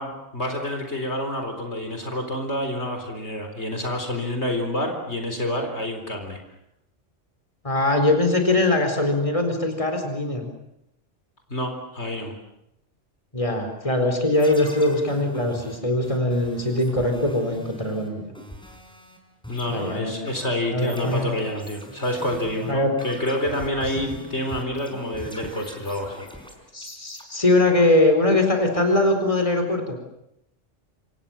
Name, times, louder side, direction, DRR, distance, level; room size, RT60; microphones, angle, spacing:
voice 1, 0.0-6.4 11.5-12.3 19.5-26.2, left 1 dB, 65° left, 4 dB, 4.4 m, -28 dB
voice 2, 7.6-10.5 13.3-18.2 19.7-20.1 20.7-21.3 22.7-22.9 26.7-30.0, left 2 dB, 25° left, 5 dB, 4.5 m, -21 dB
sound 1, 14.3-19.2 19.4-27.2, equal, 5° left, 5.1 m, -41 dB
27.0 x 27.0 x 7.3 m, 0.80 s
omnidirectional pair, 1.3 m